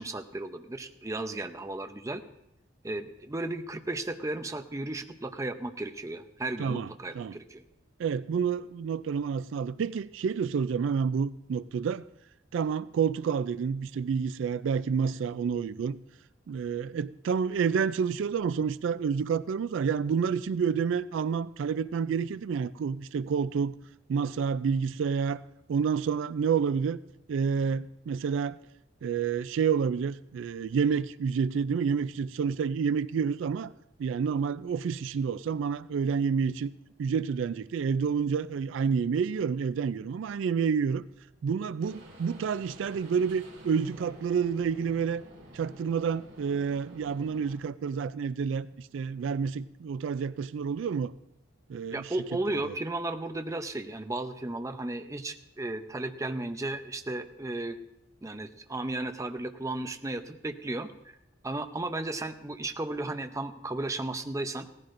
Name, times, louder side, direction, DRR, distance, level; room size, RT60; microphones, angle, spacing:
voice 1, 0.0-2.2 2.8-7.6 51.9-57.8 58.2-61.2 61.4-64.7, right 2 dB, 15° right, 8 dB, 0.5 m, -34 dB
voice 2, 8.0-12.0 12.5-16.0 16.5-23.7 24.1-25.4 25.7-27.0 27.3-28.6 29.0-33.7 34.0-36.7 37.0-41.1 41.4-45.2 45.5-51.1 51.7-52.1 52.7-52.8, right 6 dB, 75° right, 16 dB, 0.3 m, -29 dB
sound 1, 41.8-47.6, equal, 50° right, 3.7 m, -50 dB
17.0 x 14.5 x 2.6 m, 0.86 s
head